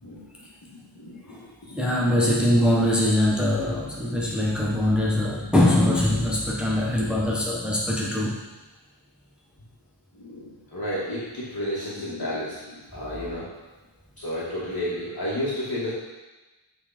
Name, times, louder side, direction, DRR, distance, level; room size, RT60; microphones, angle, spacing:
voice 1, 0.9-1.5 4.0-4.2 6.1-6.5 10.1-13.5 14.2-15.9, left 1 dB, 45° left, -9 dB, 2.3 m, -32 dB
voice 2, 1.7-8.3, left 1 dB, ahead, -4 dB, 1.2 m, -22 dB
8.1 x 4.7 x 4.5 m, 1.1 s
wide cardioid pair, 70°, 48 cm